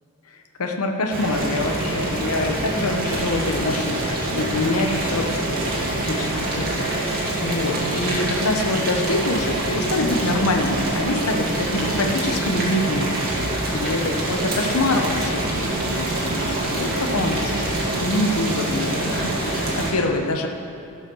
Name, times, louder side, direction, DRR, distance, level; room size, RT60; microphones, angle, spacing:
voice 1, 0.6-5.6 5.9-13.2 13.7-20.5, left 2 dB, 90° left, 4 dB, 0.9 m, -25 dB
Boiling, 1.1-19.9, right 1 dB, 45° right, 2.0 m, -25 dB
15.5 x 5.6 x 6.2 m, 2.5 s
head